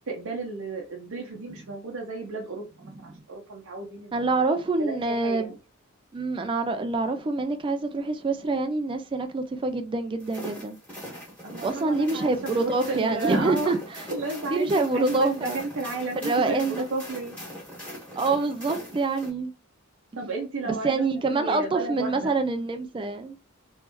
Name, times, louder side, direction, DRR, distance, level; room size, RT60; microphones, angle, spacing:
voice 1, 0.1-5.5 11.4-13.8 14.1-17.3 20.2-21.0 21.3-22.3, right 3 dB, 65° right, 0.7 m, -33 dB
voice 2, 4.1-5.5 6.1-10.8 11.6-13.8 14.5-15.6 16.2-16.9 18.2-19.5 20.6-23.4, right 3 dB, 25° right, 0.4 m, -26 dB
sound 1, 10.2-19.3, equal, 5° left, 1.8 m, -41 dB
3.4 x 3.1 x 3.0 m
head